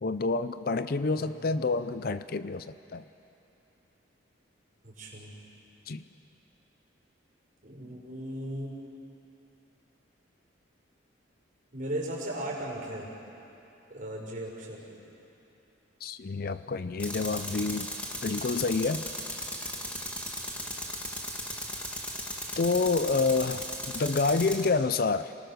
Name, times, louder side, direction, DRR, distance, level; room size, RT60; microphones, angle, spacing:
voice 1, 0.0-3.0 5.9-6.0 16.0-17.9 18.2-19.0 22.6-25.3, left 4 dB, 50° left, 13 dB, 0.5 m, -28 dB
voice 2, 1.1-1.7 4.8-5.3 7.6-8.7 11.7-13.1 13.9-15.0 20.3-20.7, right 1 dB, 40° right, -3 dB, 5.0 m, -37 dB
Tools, 17.0-24.7, equal, 5° left, 1.7 m, -37 dB
28.5 x 20.0 x 6.4 m, 2.9 s
head